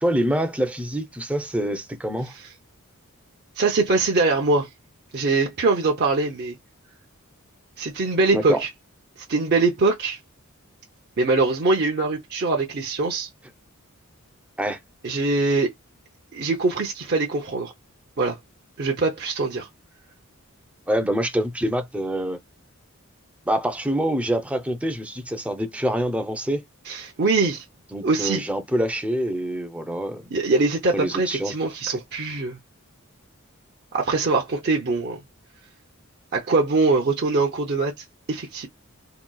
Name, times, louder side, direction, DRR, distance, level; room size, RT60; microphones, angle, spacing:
voice 1, 0.0-2.3 8.3-8.6 14.6-14.8 20.9-22.4 23.5-26.6 27.9-30.3 30.9-31.6, equal, 5° right, 0.5 m, -25 dB
voice 2, 3.6-4.7 5.1-6.6 7.8-8.7 9.3-10.2 11.2-13.3 15.0-15.7 16.3-17.7 18.2-18.4 18.8-19.7 26.9-27.6 28.0-28.4 30.3-32.6 33.9-35.2 36.3-38.7, right 3 dB, 50° right, 0.6 m, -22 dB
3.8 x 2.3 x 2.2 m
head